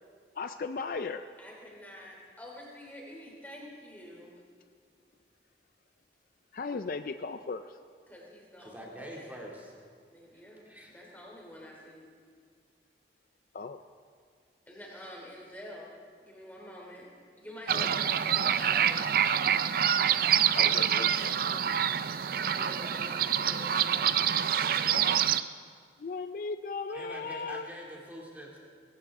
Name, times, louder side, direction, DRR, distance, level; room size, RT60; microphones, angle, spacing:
voice 1, 0.3-1.3 6.5-7.8 13.5-13.9 17.7-18.2 20.6-21.8 26.0-27.7, left 4 dB, 50° left, 10 dB, 0.4 m, -37 dB
voice 2, 1.4-4.4 8.1-9.2 10.1-12.1 14.7-15.9 16.2-17.1 17.4-19.7 22.5-24.3, left 1 dB, 10° left, -2 dB, 2.9 m, -47 dB
voice 3, 8.6-9.7 10.7-11.1 15.0-15.2 26.9-28.6, equal, 10° right, -3 dB, 2.4 m, -45 dB
sound 1, 17.7-25.4, right 9 dB, 55° right, 0.4 m, -26 dB
19.0 x 17.0 x 3.6 m, 2.1 s
head